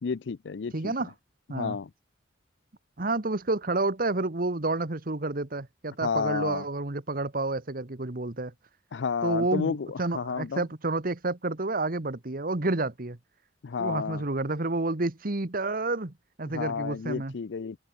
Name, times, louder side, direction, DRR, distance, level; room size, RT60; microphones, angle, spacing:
voice 1, 0.0-1.1 1.5-1.9 6.0-6.7 8.9-10.6 13.6-14.2 16.5-17.8, left 5 dB, 70° left, 0.5 m, -31 dB
voice 2, 0.7-1.1 1.5-1.8 3.0-8.5 9.2-13.2 13.8-17.3, right 2 dB, 50° right, 1.5 m, -30 dB
head